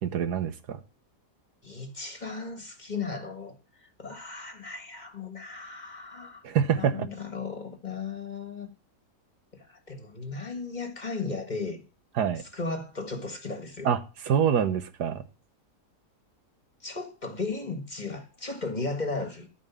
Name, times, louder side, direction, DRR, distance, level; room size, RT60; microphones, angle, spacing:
voice 1, 0.0-0.8 6.4-7.1 12.2-12.4 13.8-15.3, right 8 dB, 80° right, 1.6 m, -26 dB
voice 2, 1.6-6.4 6.8-8.7 9.5-11.8 12.4-13.9 16.8-19.5, left 3 dB, 30° left, 1.5 m, -36 dB
13.5 x 5.7 x 7.0 m
omnidirectional pair, 1.7 m